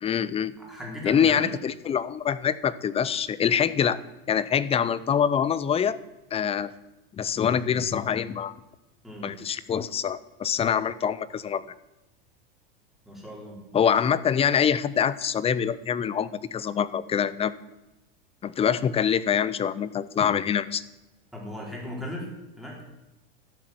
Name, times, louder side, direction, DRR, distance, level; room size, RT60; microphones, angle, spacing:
voice 1, 0.0-0.5 1.0-4.0 4.3-6.0 6.3-6.7 7.2-8.6 9.2-11.6 13.7-17.5 18.4-20.8, left 8 dB, 20° left, 18 dB, 0.5 m, -25 dB
voice 2, 0.6-1.5 9.0-9.3 13.1-13.6 21.3-22.3 22.6-22.8, left 1 dB, ahead, -3 dB, 4.3 m, -37 dB
12.5 x 7.6 x 7.8 m, 1.0 s
supercardioid pair, 120°, 29 cm